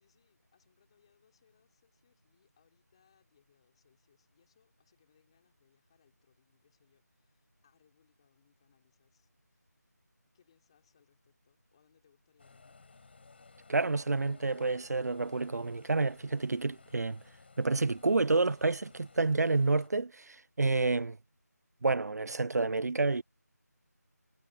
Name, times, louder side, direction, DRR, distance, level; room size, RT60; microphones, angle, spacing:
voice 1, 0.0-9.9 10.3-12.8, left 8 dB, 20° left, 3.7 m, -72 dB
sound 1, 12.4-19.9, left 4 dB, 35° left, 5.8 m, -58 dB
voice 2, 13.7-17.2 17.6-21.2 21.8-23.2, right 3 dB, 65° right, 0.5 m, -29 dB
figure-of-eight pair, 170°, 9 cm